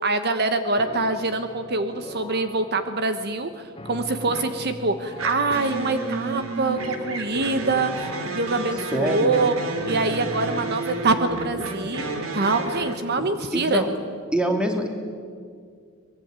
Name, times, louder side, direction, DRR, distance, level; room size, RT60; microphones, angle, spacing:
voice 1, 0.0-9.6 9.9-13.8, right 3 dB, 50° right, 9 dB, 1.2 m, -25 dB
sound 1, 0.8-12.8, left 1 dB, 25° left, 1.2 m, -41 dB
sound 2, 4.3-4.6 5.2-13.0, right 2 dB, 75° right, 2.9 m, -32 dB
voice 2, 8.9-9.3 13.5-13.9 14.3-14.9, equal, 5° right, 3 dB, 2.8 m, -24 dB
23.5 x 21.5 x 9.1 m, 2.1 s
head